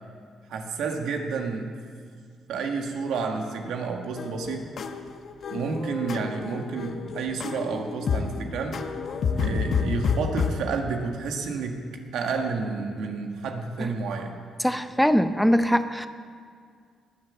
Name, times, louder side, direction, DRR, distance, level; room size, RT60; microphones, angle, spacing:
voice 1, 0.5-1.7 2.5-4.7 5.5-8.8 9.3-14.4, right 4 dB, 80° right, 3 dB, 1.6 m, -30 dB
sound 1, 4.2-10.5, left 5 dB, 55° left, 1.1 m, -29 dB
voice 2, 14.6-16.1, equal, ahead, 10 dB, 0.6 m, -22 dB
19.5 x 7.4 x 7.3 m, 2.1 s
cardioid pair, 90°, 0 cm